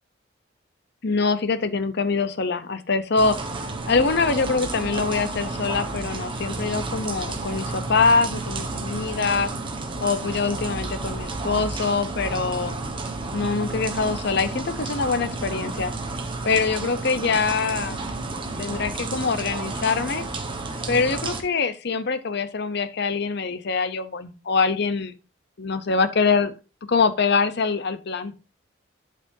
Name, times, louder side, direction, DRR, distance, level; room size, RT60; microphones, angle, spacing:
voice 1, 1.0-3.4 3.9-9.5 10.0-12.8 13.3-15.9 16.4-18.0 18.6-20.3 20.9-25.1 25.6-26.5 26.9-28.3, left 4 dB, 55° left, 12 dB, 0.7 m, -24 dB
sound 1, 3.2-21.4, right 3 dB, 25° right, 1.2 m, -31 dB
11.5 x 5.0 x 2.7 m, 0.33 s
head